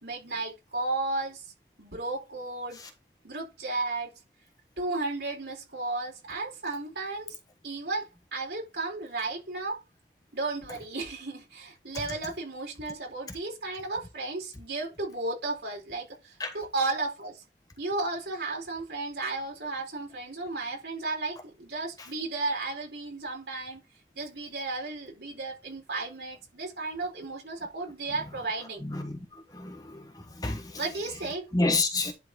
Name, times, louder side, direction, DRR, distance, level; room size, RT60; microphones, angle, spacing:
voice 1, 0.0-1.4 1.8-2.8 3.2-4.1 4.8-7.4 7.6-9.8 10.3-17.4 17.8-23.8 24.2-28.8 30.8-31.5, right 3 dB, 65° right, 4.3 m, -34 dB
voice 2, 28.8-29.2 29.5-30.8 31.5-32.1, left 2 dB, 20° left, 1.2 m, -29 dB
11.0 x 4.1 x 3.9 m
head